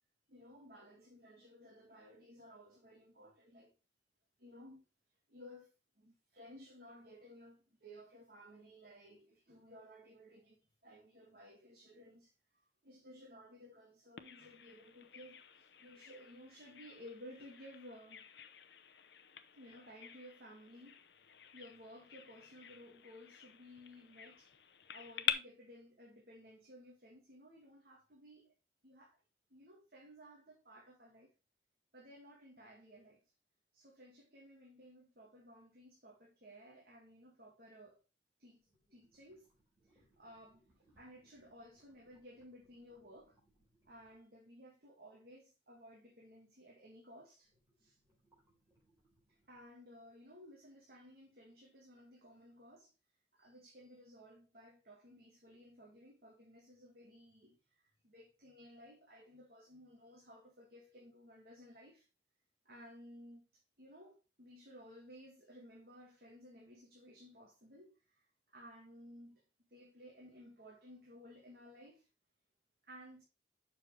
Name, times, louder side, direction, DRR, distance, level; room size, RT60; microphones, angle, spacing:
voice 1, 0.3-3.7 4.4-4.9 5.3-12.3 12.8-18.3 19.5-21.0 21.5-28.5 28.8-29.2 29.5-31.3 31.9-33.2 33.7-38.0 38.4-39.5 39.8-43.3 43.8-47.5 47.8-48.0 49.3-52.9 53.3-62.1 62.7-63.5 63.8-69.4 69.7-72.1 72.8-73.2, equal, 55° right, 1.9 m, -57 dB
Bird vocalization bird call bird song, 14.2-25.3, left 10 dB, 70° left, 0.7 m, -46 dB
sound 1, 38.0-38.1 38.6-44.3 47.3-49.6, right 1 dB, 15° right, 4.5 m, -75 dB
7.4 x 6.3 x 3.2 m
head